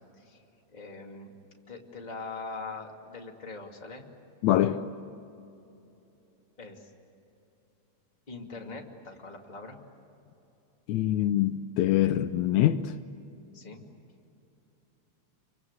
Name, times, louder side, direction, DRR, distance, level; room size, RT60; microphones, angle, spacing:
voice 1, 0.7-1.3 1.7-4.1 6.6-6.9 8.3-9.8 13.5-13.9, left 3 dB, 15° left, 2.2 m, -42 dB
voice 2, 4.4-4.8 10.9-12.9, left 13 dB, 80° left, 2.0 m, -24 dB
29.0 x 24.0 x 8.2 m
omnidirectional pair, 3.4 m